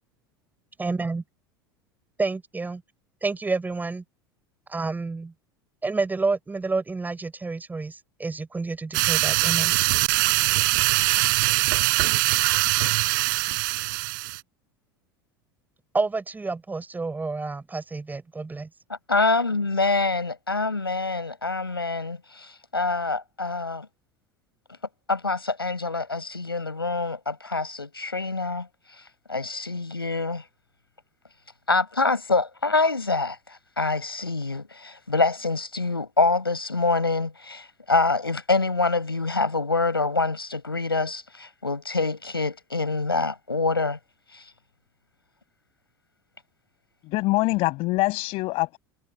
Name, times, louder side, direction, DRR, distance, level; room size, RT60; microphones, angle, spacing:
voice 1, 0.8-1.2 2.2-2.8 3.2-4.0 4.7-5.3 5.8-9.7 15.9-18.7, right 3 dB, 15° right, 5.6 m, -29 dB
sound 1, 8.9-14.4, right 26 dB, 60° right, 5.1 m, -22 dB
voice 2, 19.1-23.9 25.1-28.7 29.3-30.4 31.7-44.0 44.3-44.4, left 3 dB, 90° left, 6.8 m, -25 dB
voice 3, 47.0-48.8, left 22 dB, 50° left, 6.1 m, -24 dB
figure-of-eight pair, 75°, 12 cm